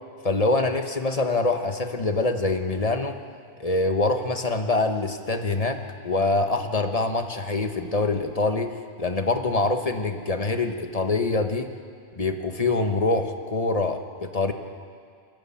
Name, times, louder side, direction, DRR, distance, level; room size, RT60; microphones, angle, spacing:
voice 1, 0.2-3.2 3.6-11.7 12.2-14.5, left 3 dB, 35° left, 6 dB, 1.3 m, -25 dB
22.0 x 16.0 x 8.6 m, 2.2 s
omnidirectional pair, 1.1 m